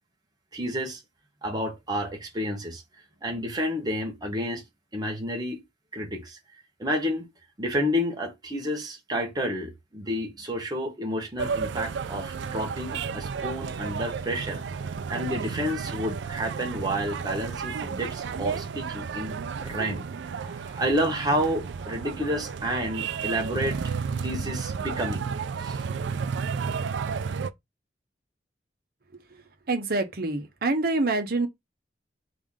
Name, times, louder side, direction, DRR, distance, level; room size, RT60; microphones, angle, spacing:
voice 1, 0.5-1.0 1.4-4.6 4.9-5.6 5.9-6.4 6.8-7.3 7.6-14.6 15.1-20.0 20.4-25.2 25.6-25.8, equal, 20° right, 1.1 m, -30 dB
sound 1, 11.4-27.5, right 6 dB, 75° right, 0.4 m, -32 dB
voice 2, 29.7-31.5, right 2 dB, 55° right, 0.9 m, -26 dB
4.2 x 3.5 x 3.7 m
head